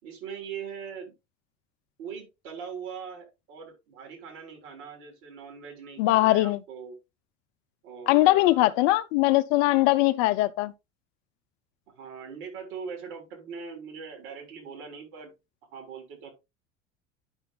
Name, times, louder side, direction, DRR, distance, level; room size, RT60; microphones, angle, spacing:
voice 1, 0.0-1.1 2.0-7.0 7.8-8.7 12.0-15.3 15.7-16.3, right 6 dB, 55° right, 3.5 m, -41 dB
voice 2, 6.0-6.6 8.1-10.7, left 17 dB, 45° left, 0.5 m, -21 dB
10.5 x 5.8 x 2.3 m
figure-of-eight pair, 75°, 37 cm